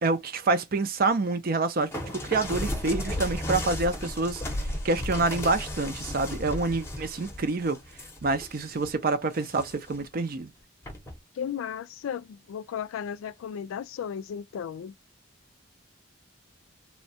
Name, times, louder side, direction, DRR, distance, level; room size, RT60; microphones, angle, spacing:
voice 1, 0.0-1.9 2.3-7.8 8.2-10.5, right 3 dB, 45° right, 0.5 m, -27 dB
sound 1, 1.9-8.9 9.3-10.0 10.8-11.2, left 1 dB, 15° left, 0.7 m, -34 dB
voice 2, 11.4-14.9, left 8 dB, 80° left, 0.3 m, -35 dB
3.1 x 2.3 x 2.7 m
head